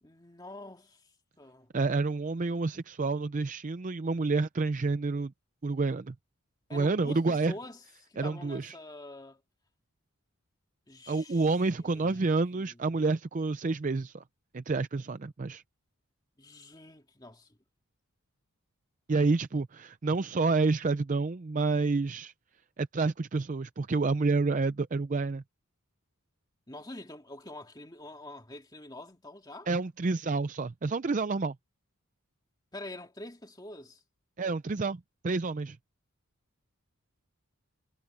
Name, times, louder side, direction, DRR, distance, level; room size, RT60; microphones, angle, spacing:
voice 1, 0.0-1.7 6.7-9.4 10.9-12.8 16.4-17.6 26.7-29.7 32.7-34.0, left 1 dB, 20° left, 2.1 m, -46 dB
voice 2, 1.7-5.3 5.6-6.1 6.7-7.5 8.2-8.7 11.1-14.2 14.5-15.6 19.1-22.3 22.8-25.4 29.7-31.6 34.4-35.8, right 3 dB, 35° right, 0.4 m, -29 dB
head